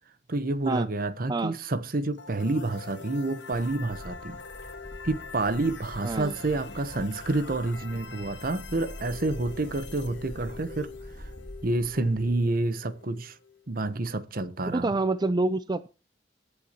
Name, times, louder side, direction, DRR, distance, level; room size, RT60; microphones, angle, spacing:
voice 1, 0.3-4.4 5.0-10.9 11.6-13.3 13.7-14.9, right 2 dB, 55° right, 1.0 m, -29 dB
sound 1, 2.1-14.0, left 5 dB, 85° left, 1.9 m, -45 dB
Bird, 3.5-12.3, equal, 50° left, 3.3 m, -45 dB
voice 2, 6.0-6.4 14.6-15.9, right 2 dB, 25° right, 0.5 m, -27 dB
22.5 x 7.7 x 2.9 m
head